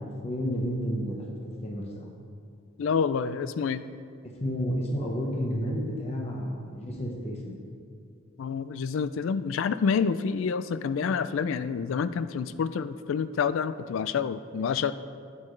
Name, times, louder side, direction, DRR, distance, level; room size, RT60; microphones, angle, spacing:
voice 1, 0.0-1.4 1.6-2.1 4.4-7.6, equal, 30° left, -1 dB, 1.0 m, -31 dB
voice 2, 2.8-3.8 8.4-14.9, left 6 dB, 65° left, 14 dB, 0.3 m, -28 dB
12.0 x 8.5 x 3.2 m, 2.3 s
head